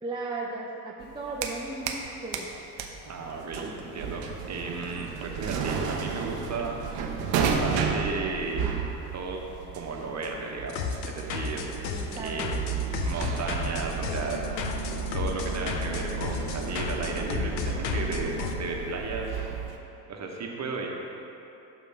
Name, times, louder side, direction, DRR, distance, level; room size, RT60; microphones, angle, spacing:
voice 1, 0.0-2.7 11.9-12.5, right 2 dB, 10° right, -3 dB, 0.6 m, -36 dB
sound 1, 1.0-2.1 2.3-19.8, right 6 dB, 60° right, 0.8 m, -33 dB
voice 2, 3.0-6.8 7.3-8.7 9.1-9.4 9.7-14.4 15.1-19.3 20.1-20.9, right 3 dB, 35° right, 0 dB, 1.0 m, -34 dB
sound 2, 10.7-18.5, left 6 dB, 90° left, 0.6 m, -33 dB
sound 3, 14.1-19.0, left 10 dB, 50° left, 1.2 m, -43 dB
7.4 x 3.0 x 5.8 m, 3.0 s
hypercardioid pair, 60°, 49 cm